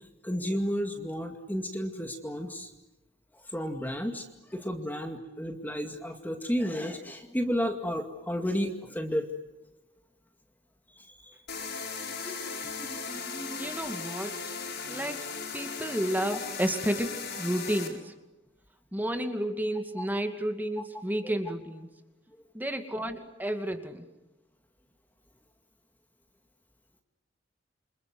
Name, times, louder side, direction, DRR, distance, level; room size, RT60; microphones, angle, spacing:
voice 1, 0.2-2.7 3.5-4.2 4.5-9.3 11.2-11.4 12.0-13.7 20.0-20.1, equal, 10° left, 4 dB, 2.2 m, -32 dB
sound 1, 11.5-17.9, left 5 dB, 65° left, 7.6 m, -37 dB
voice 2, 13.5-14.4 14.9-15.3 15.5-18.1 18.9-21.9 22.5-24.1, right 1 dB, 10° right, 6 dB, 2.4 m, -31 dB
28.5 x 26.5 x 7.9 m, 1.0 s
head